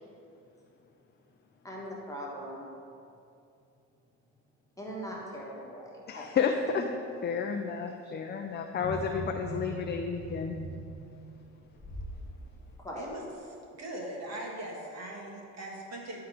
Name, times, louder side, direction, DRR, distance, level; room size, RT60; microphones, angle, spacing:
voice 1, 1.6-2.7 4.8-6.3 12.8-13.1, equal, 10° left, -4 dB, 1.5 m, -40 dB
voice 2, 6.1-6.8 7.2-10.6, left 6 dB, 35° left, 4 dB, 0.4 m, -31 dB
sound 1, 8.8-12.2 12.7-12.8, right 1 dB, 15° right, 1.7 m, -41 dB
voice 3, 13.8-16.2, right 1 dB, 60° right, -1 dB, 1.6 m, -40 dB
10.5 x 3.7 x 4.7 m, 2.6 s
cardioid pair, 90°, 30 cm